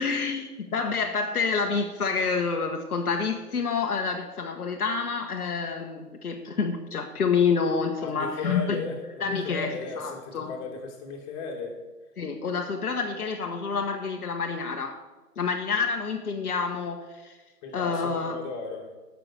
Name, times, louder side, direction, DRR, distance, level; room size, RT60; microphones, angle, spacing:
voice 1, 0.0-8.9 9.2-10.5 12.2-15.0 15.4-17.4 17.7-18.4, left 5 dB, 70° left, 3 dB, 1.3 m, -28 dB
voice 2, 8.0-11.8 17.6-18.9, left 3 dB, 30° left, 0 dB, 2.4 m, -36 dB
14.0 x 6.0 x 6.2 m, 1.2 s
figure-of-eight pair, 135°, 47 cm